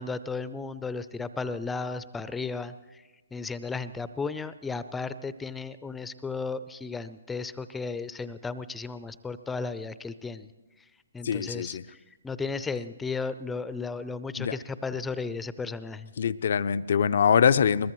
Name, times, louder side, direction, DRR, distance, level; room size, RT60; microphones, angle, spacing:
voice 1, 0.0-2.7 3.3-10.5 11.1-11.8 12.2-16.1, left 4 dB, 10° left, 14 dB, 0.5 m, -34 dB
voice 2, 11.2-11.8 14.4-14.6 16.2-17.9, left 7 dB, 60° left, 14 dB, 0.5 m, -23 dB
22.0 x 20.5 x 3.1 m, 1.2 s
figure-of-eight pair, 135°, 0 cm